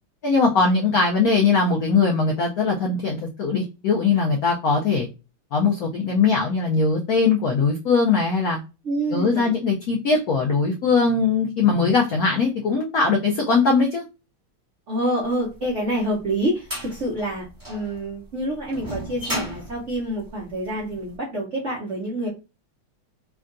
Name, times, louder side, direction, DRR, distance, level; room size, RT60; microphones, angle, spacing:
voice 1, 0.2-5.1 5.5-8.6 9.1-14.0, left 4 dB, 80° left, 0 dB, 0.8 m, -20 dB
voice 2, 8.8-9.5 14.9-22.3, right 1 dB, 65° right, -4 dB, 0.7 m, -27 dB
sound 1, 15.6-21.0, equal, 15° right, 0.6 m, -34 dB
3.6 x 2.2 x 2.4 m, 0.28 s
omnidirectional pair, 2.3 m